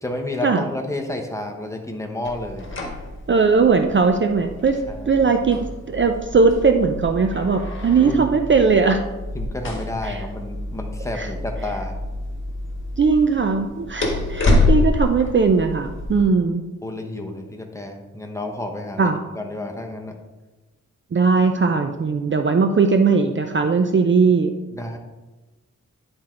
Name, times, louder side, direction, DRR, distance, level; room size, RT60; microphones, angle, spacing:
voice 1, 0.0-2.7 4.9-5.1 8.0-8.2 9.3-12.0 16.8-19.1 19.4-20.2 24.7-25.0, left 1 dB, 10° left, 1 dB, 0.9 m, -30 dB
sound 1, 2.2-16.2, left 2 dB, 40° left, 1.5 m, -27 dB
voice 2, 3.3-4.8 5.1-9.0 10.0-10.2 11.2-11.3 13.0-16.6 19.0-19.2 21.1-24.5, right 4 dB, 40° right, 6 dB, 0.5 m, -19 dB
10.0 x 4.4 x 3.7 m, 1.1 s
wide cardioid pair, 120°, 30 cm